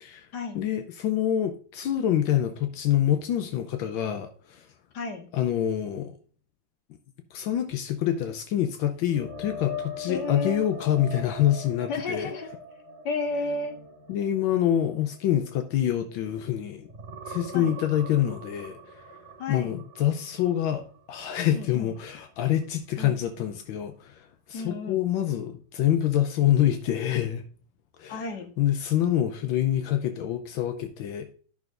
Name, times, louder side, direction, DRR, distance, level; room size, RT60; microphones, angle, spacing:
voice 1, 0.5-4.7 5.3-6.2 7.3-12.3 14.1-16.9 17.3-19.0 19.5-27.4 28.0-28.2 28.6-31.3, left 11 dB, 85° left, 1.5 m, -26 dB
voice 2, 4.9-5.3 10.1-10.7 11.9-12.5 13.0-13.8 17.5-17.8 19.4-19.8 21.5-21.9 23.0-23.2 24.5-25.0 28.1-28.5, left 3 dB, 60° left, 1.8 m, -32 dB
sound 1, 9.1-16.5 16.8-20.7 21.1-21.3 24.7-24.8, left 2 dB, 30° right, 1.9 m, -41 dB
12.0 x 6.3 x 2.5 m
omnidirectional pair, 2.1 m